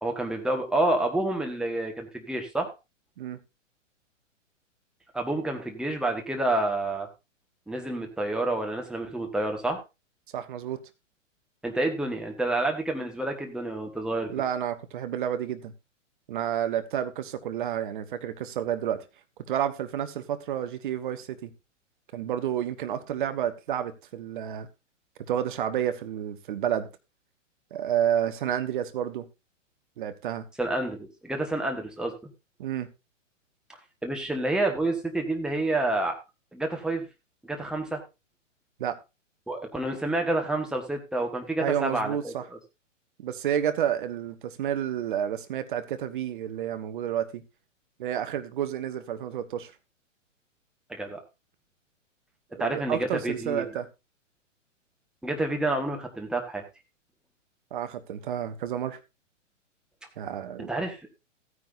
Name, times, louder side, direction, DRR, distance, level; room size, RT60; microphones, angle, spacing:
voice 1, 0.0-2.7 5.1-7.1 7.7-9.8 11.6-14.3 30.6-32.3 34.0-36.1 36.5-37.0 37.4-38.0 39.5-42.3 50.9-51.2 52.6-53.7 55.2-56.6 60.7-61.2, right 2 dB, ahead, 1.4 m, -28 dB
voice 2, 10.3-10.8 14.3-15.7 16.3-19.0 19.5-21.5 22.1-24.7 25.3-26.9 27.7-29.3 30.0-30.5 32.6-32.9 38.8-39.0 41.6-42.4 43.2-47.4 48.0-49.7 52.5-53.9 57.7-59.0 60.2-60.7, right 10 dB, 40° right, 1.1 m, -30 dB
15.0 x 9.6 x 2.6 m
figure-of-eight pair, 115°, 38 cm